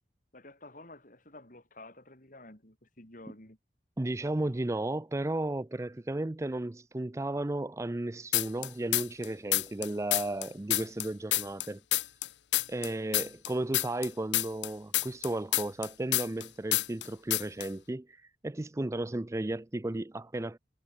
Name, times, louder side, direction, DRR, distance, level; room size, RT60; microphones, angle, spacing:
voice 1, 0.3-3.6, left 2 dB, 50° left, 5.3 m, -51 dB
voice 2, 4.0-12.1 12.7-20.6, right 1 dB, 15° right, 0.5 m, -34 dB
sound 1, 8.3-9.3 9.5-12.3 12.5-16.5 16.7-17.1 17.3-17.7, left 16 dB, 90° left, 0.7 m, -28 dB
head